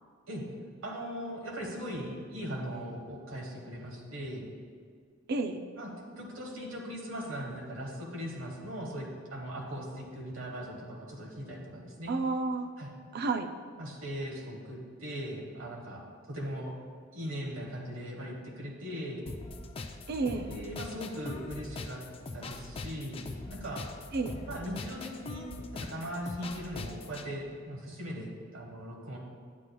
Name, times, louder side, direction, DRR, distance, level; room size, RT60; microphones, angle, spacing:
voice 1, 0.8-4.4 5.8-5.9 6.2-12.1 12.8-12.9 13.8-16.7 17.1-19.3 20.4-22.0 22.3-23.8 24.5-25.5 25.7-29.2, equal, 70° right, 0 dB, 1.1 m, -39 dB
voice 2, 5.3-5.6 12.1-12.7 13.1-13.5 20.1-20.5 24.1-24.4, right 3 dB, 50° right, 7 dB, 0.4 m, -31 dB
sound 1, 19.3-27.3, left 3 dB, 30° left, 0.4 m, -42 dB
9.6 x 8.2 x 2.2 m, 2.1 s
head